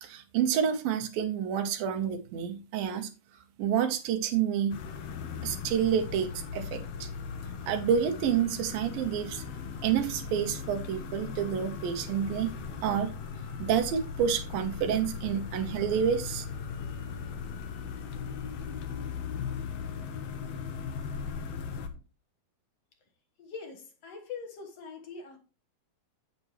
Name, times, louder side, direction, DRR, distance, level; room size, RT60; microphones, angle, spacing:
voice 1, 0.0-3.1 3.6-4.8 5.4-7.1 7.7-9.4 9.8-12.5 12.8-13.1 13.6-16.5, right 8 dB, 85° right, 2.9 m, -29 dB
sound 1, 4.7-21.9, left 6 dB, 70° left, 1.5 m, -38 dB
voice 2, 19.3-19.6 21.4-22.0 23.4-25.4, left 5 dB, 55° left, 2.2 m, -44 dB
8.5 x 8.4 x 3.1 m
omnidirectional pair, 4.0 m